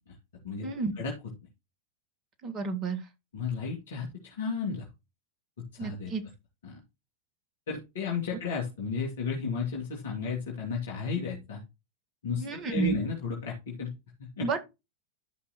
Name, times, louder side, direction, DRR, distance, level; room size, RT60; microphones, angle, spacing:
voice 1, 2.4-3.0 5.8-6.2 12.4-13.0 14.4-14.6, right 4 dB, 30° right, 1.8 m, -30 dB
voice 2, 3.3-4.9 5.6-6.1 6.6-6.8 7.7-11.6 12.2-13.9 14.2-14.5, left 5 dB, 60° left, 2.7 m, -33 dB
13.0 x 5.6 x 3.1 m
figure-of-eight pair, 90°, 0 cm